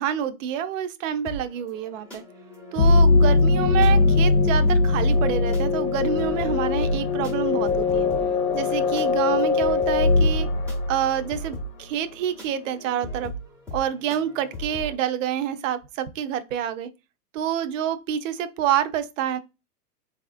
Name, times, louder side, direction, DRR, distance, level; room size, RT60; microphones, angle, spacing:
voice 1, 0.0-2.2 2.7-8.1 8.5-10.5 10.9-13.3 13.7-16.9 17.3-19.4, right 10 dB, 55° right, 0.5 m, -27 dB
sound 1, 1.2-15.0, right 1 dB, 5° left, 0.4 m, -39 dB
sound 2, 2.8-11.4, left 3 dB, 60° left, 0.6 m, -20 dB
4.0 x 2.4 x 2.5 m
hypercardioid pair, 145°, 48 cm